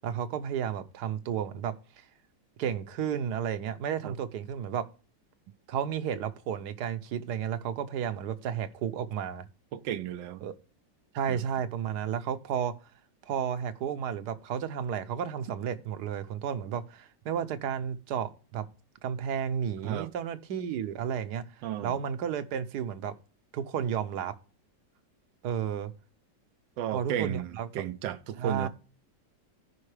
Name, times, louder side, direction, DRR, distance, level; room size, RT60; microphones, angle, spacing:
voice 1, 0.0-2.0 2.6-4.9 5.7-9.5 10.4-10.5 11.1-12.7 13.3-18.7 19.0-23.1 23.5-24.3 25.4-25.9 26.9-27.7 28.4-28.7, right 8 dB, 70° right, 1.3 m, -32 dB
voice 2, 9.7-10.5 11.3-11.4 19.8-20.1 21.6-22.0 26.8-28.7, right 11 dB, 85° right, 1.4 m, -34 dB
14.5 x 5.2 x 3.2 m
omnidirectional pair, 1.9 m